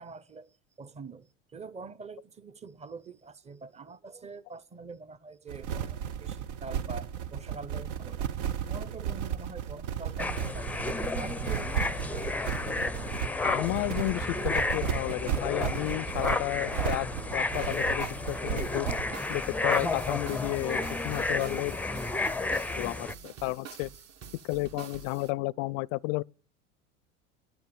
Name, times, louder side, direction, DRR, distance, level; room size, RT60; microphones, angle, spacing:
voice 1, 0.0-8.3 8.6-10.7 11.1-12.2, right 4 dB, 20° right, 0.9 m, -45 dB
sound 1, 5.5-19.1, right 9 dB, 70° right, 1.0 m, -34 dB
sound 2, 10.2-23.1, left 2 dB, 5° left, 0.5 m, -32 dB
voice 2, 13.4-18.9 19.3-21.8 22.8-23.9 24.4-26.2, left 22 dB, 55° left, 0.5 m, -32 dB
sound 3, 17.5-25.3, right 6 dB, 45° right, 1.5 m, -47 dB
9.9 x 9.5 x 6.9 m
hypercardioid pair, 85°, 36 cm